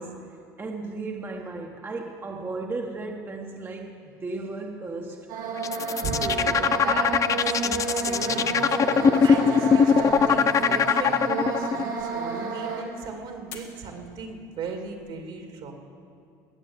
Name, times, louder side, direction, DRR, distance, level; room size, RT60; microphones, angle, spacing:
voice 1, 0.0-5.3 5.7-6.0, right 3 dB, 25° right, 1.2 m, -35 dB
sound 1, 5.3-12.8, right 4 dB, 90° right, 3.0 m, -30 dB
sound 2, 5.6-11.8, left 7 dB, 35° left, 0.5 m, -21 dB
voice 2, 6.0-7.2 7.5-15.7, right 4 dB, 65° right, 2.5 m, -36 dB
sound 3, 8.0-11.4 12.0-12.1 13.5-13.7 14.6-15.1, left 4 dB, 80° left, 1.9 m, -42 dB
21.5 x 8.3 x 7.2 m
supercardioid pair, 90°, 10 cm